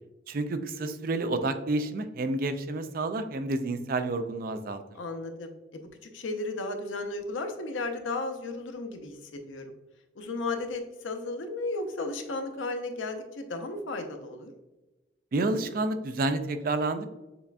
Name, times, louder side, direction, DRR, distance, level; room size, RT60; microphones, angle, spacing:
voice 1, 0.3-4.8 15.3-17.1, right 2 dB, 45° right, 9 dB, 0.3 m, -29 dB
voice 2, 4.9-5.8 6.1-9.2 9.5-9.7 10.2-14.5, left 2 dB, 80° left, 5 dB, 0.6 m, -34 dB
6.7 x 2.5 x 2.2 m, 1.1 s
head